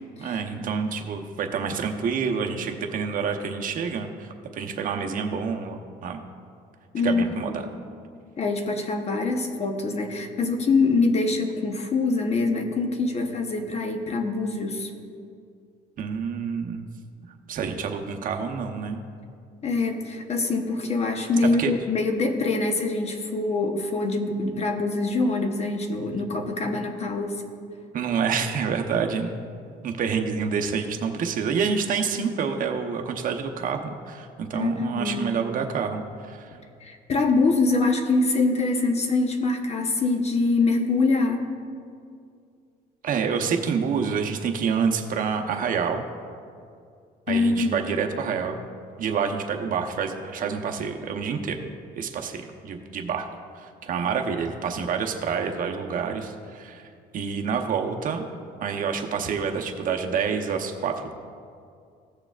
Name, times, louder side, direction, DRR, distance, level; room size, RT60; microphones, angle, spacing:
voice 1, 0.2-6.2 7.0-7.6 16.0-16.8 17.5-19.0 21.6-21.7 27.9-29.5 29.8-36.6 43.0-46.0 47.3-48.5 49.0-51.7 51.9-53.3 53.5-56.8 57.1-58.2 58.6-61.1, right 6 dB, 55° right, 4 dB, 0.9 m, -28 dB
voice 2, 6.9-7.5 8.4-14.9 19.6-27.4 34.5-35.3 36.8-41.5 47.3-47.9, left 3 dB, 40° left, 5 dB, 1.0 m, -24 dB
16.5 x 6.7 x 2.4 m, 2.3 s
cardioid pair, 110°, 17 cm